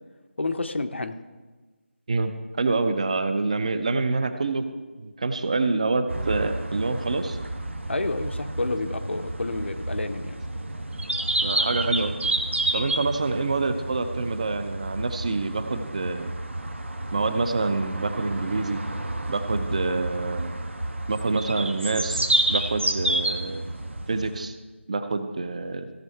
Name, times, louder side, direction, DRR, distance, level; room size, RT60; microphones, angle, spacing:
voice 1, 0.4-1.2 7.9-10.4, left 2 dB, 65° left, 8 dB, 0.8 m, -29 dB
voice 2, 2.6-4.6 5.0-7.4 11.4-12.2 12.7-16.3 17.1-18.8 19.3-20.5 21.1-23.6 24.1-24.6 24.9-25.9, right 3 dB, 35° right, 9 dB, 0.6 m, -27 dB
sound 1, 6.1-24.5, right 1 dB, 70° right, 1.2 m, -30 dB
16.0 x 5.4 x 4.6 m, 1.3 s
figure-of-eight pair, 165°, 7 cm